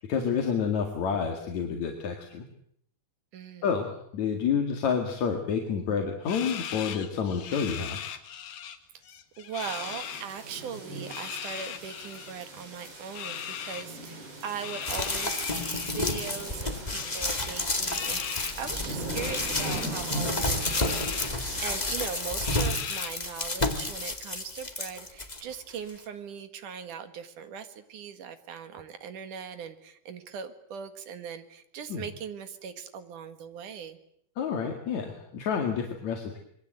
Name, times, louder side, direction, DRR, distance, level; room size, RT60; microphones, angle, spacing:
voice 1, 0.1-2.4 3.6-8.0 31.9-32.0 34.4-36.4, left 6 dB, 50° left, 3 dB, 3.1 m, -29 dB
voice 2, 3.3-3.8 9.4-34.0, right 7 dB, 55° right, 9 dB, 2.9 m, -40 dB
sound 1, 6.3-8.8 9.0-10.2 11.0-12.3 13.1-13.9 14.6-16.5 16.9-18.6 19.2-19.9 20.6-21.3 21.7-21.8 22.4-23.3, left 9 dB, 65° left, 3.2 m, -39 dB
sound 2, 9.6-21.7, right 1 dB, 75° right, 10.5 m, -40 dB
sound 3, 14.8-25.4 25.9-26.0, left 2 dB, 20° left, 1.0 m, -31 dB
27.0 x 22.5 x 7.9 m, 0.71 s
omnidirectional pair, 4.8 m